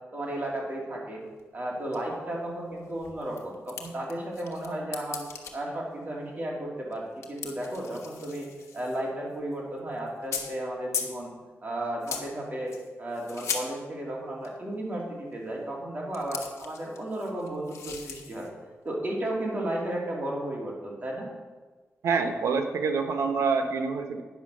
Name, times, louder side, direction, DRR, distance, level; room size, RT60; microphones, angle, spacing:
voice 1, 0.1-1.2 1.5-5.2 5.5-8.5 8.7-11.3 11.6-18.5 18.8-21.3, right 1 dB, 35° right, -3 dB, 2.7 m, -34 dB
sound 1, 1.4-1.5 1.9-2.0 2.3-2.4 2.7-4.7 4.9-5.5 6.9-7.0 7.2-9.1 9.4-9.6 10.1-10.6 10.9-11.2 12.0-12.3 12.7-13.7 14.4-14.6 16.1-18.5, left 6 dB, 85° left, 1.2 m, -38 dB
voice 2, 22.0-24.2, right 5 dB, 90° right, 6 dB, 1.0 m, -26 dB
9.4 x 6.1 x 6.1 m, 1.3 s
wide cardioid pair, 110°, 5 cm